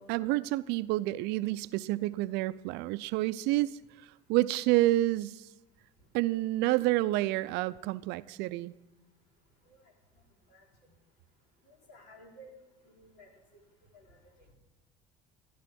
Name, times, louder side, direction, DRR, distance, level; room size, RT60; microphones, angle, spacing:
voice 1, 0.0-3.7 4.3-5.5 6.1-8.7, right 17 dB, 65° right, 16 dB, 0.6 m, -29 dB
voice 2, 11.6-13.3 13.9-14.2, equal, 65° left, 0 dB, 4.0 m, -55 dB
14.5 x 11.0 x 6.1 m, 1.1 s
hypercardioid pair, 70°, 19 cm